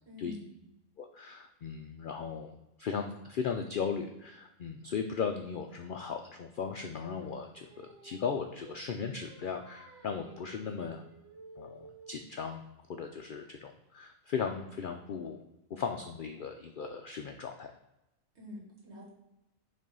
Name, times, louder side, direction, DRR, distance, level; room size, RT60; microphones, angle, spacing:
voice 1, 0.0-0.5 18.4-19.1, left 2 dB, 55° right, -3 dB, 1.9 m, -46 dB
voice 2, 1.0-2.5 2.8-11.0 11.6-12.6 12.9-15.4 15.7-17.7, left 6 dB, 75° left, 5 dB, 0.4 m, -37 dB
Singing, 7.1-12.3, right 2 dB, 85° right, 1.7 m, -55 dB
5.3 x 3.4 x 5.2 m, 0.93 s
omnidirectional pair, 1.4 m